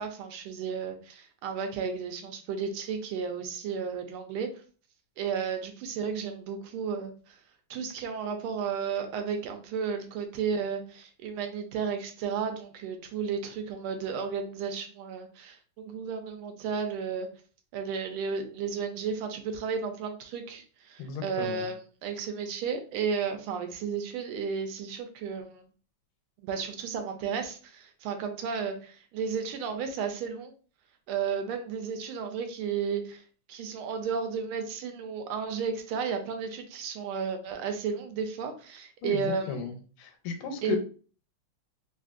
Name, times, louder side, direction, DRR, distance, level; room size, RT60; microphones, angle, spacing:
voice 1, 0.0-4.5 5.2-7.4 7.7-17.3 17.7-25.7 26.4-30.5 31.1-33.2 33.5-39.7 40.6-40.8, right 6 dB, 80° right, 6 dB, 1.4 m, -33 dB
voice 2, 21.0-21.7 39.0-40.8, left 7 dB, 85° left, 6 dB, 1.5 m, -35 dB
3.5 x 2.5 x 2.4 m, 0.39 s
omnidirectional pair, 2.4 m